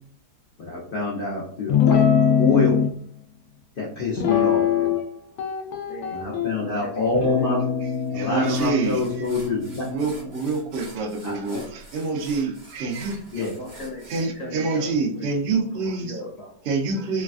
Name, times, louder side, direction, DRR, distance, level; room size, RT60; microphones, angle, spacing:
voice 1, 0.6-2.8 3.8-5.0 6.1-7.6 8.1-10.0 11.2-11.6 13.3-13.5, left 3 dB, 90° left, -5 dB, 0.4 m, -26 dB
Guitar, 1.7-2.9 4.2-5.1 5.4-6.5 7.1-10.6, left 7 dB, 70° left, 1.0 m, -23 dB
voice 2, 5.8-6.2 6.6-7.6 8.6-8.7 9.0-9.3 13.3-14.1 14.3-16.7 16.9-17.0, left 1 dB, 55° left, -4 dB, 1.4 m, -39 dB
sound 1, 7.9-8.0 8.4-14.3, right 1 dB, 40° right, 0.7 m, -46 dB
voice 3, 8.1-9.3 9.8-13.4 14.1-16.2 16.7-17.2, right 4 dB, 85° right, 0 dB, 0.5 m, -27 dB
3.1 x 2.4 x 2.4 m, 0.62 s
omnidirectional pair, 1.9 m